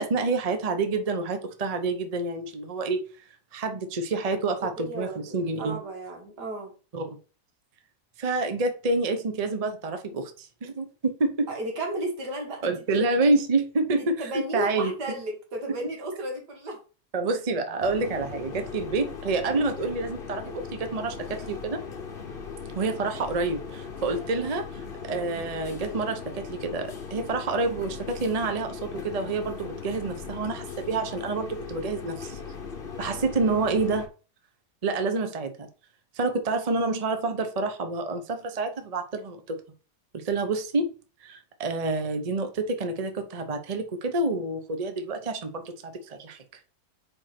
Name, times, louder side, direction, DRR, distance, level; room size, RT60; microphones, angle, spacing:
voice 1, 0.0-3.0 3.5-5.8 6.9-7.1 8.2-11.5 12.6-14.9 17.1-21.8 22.7-24.7 25.0-32.4 33.0-34.0 34.8-35.7 36.1-39.6 40.1-40.9 41.2-46.4, right 3 dB, 30° right, 7 dB, 0.8 m, -28 dB
voice 2, 4.6-6.8 11.5-13.1 13.9-16.8 33.0-33.3, right 1 dB, 80° right, 1 dB, 2.5 m, -34 dB
sound 1, 17.8-34.1, left 5 dB, 40° left, 1.1 m, -38 dB
4.7 x 4.5 x 5.9 m, 0.35 s
omnidirectional pair, 1.7 m